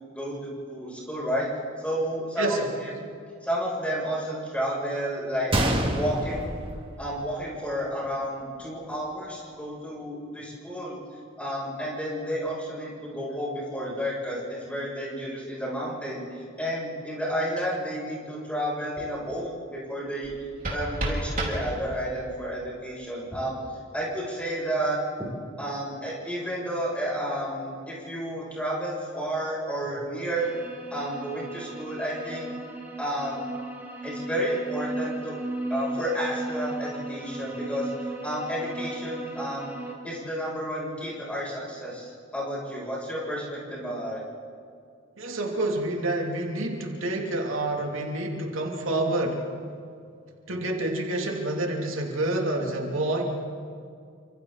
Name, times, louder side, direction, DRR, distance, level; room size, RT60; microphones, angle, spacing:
voice 1, 0.1-1.5 1.8-2.9 3.4-5.5 5.9-6.5 7.0-11.0 11.4-20.3 20.7-23.6 23.9-25.3 25.6-30.5 30.9-32.5 33.0-33.4 34.0-35.4 35.7-37.9 38.2-39.7 40.0-44.2, equal, 5° left, -5 dB, 7.1 m, -31 dB
voice 2, 2.4-2.7 45.2-49.5 50.5-53.2, right 2 dB, 80° right, 0 dB, 2.9 m, -28 dB
Gunshot gunfire, 5.5-7.5 7.8-7.9 8.6-8.8, right 1 dB, 25° right, 2.1 m, -27 dB
sound 1, 20.2-22.2, right 1 dB, 45° right, 4.5 m, -32 dB
sound 2, 30.4-39.9, right 2 dB, 10° right, 2.4 m, -36 dB
29.5 x 26.5 x 4.1 m, 2.3 s
head